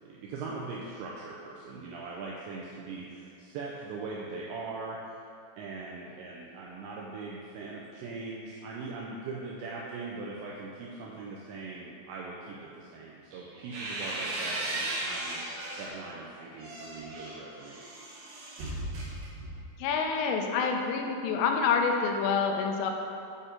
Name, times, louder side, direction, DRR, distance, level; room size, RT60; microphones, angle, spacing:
voice 1, 0.0-5.0 5.6-15.5 15.8-17.8, right 3 dB, 85° right, -4 dB, 2.5 m, -41 dB
sound 1, 13.3-16.0 16.4-19.8, right 1 dB, 65° right, 3.1 m, -37 dB
voice 2, 19.8-22.9, left 5 dB, 85° left, 3 dB, 3.1 m, -27 dB
8.9 x 4.5 x 5.0 m, 2.5 s
omnidirectional pair, 5.8 m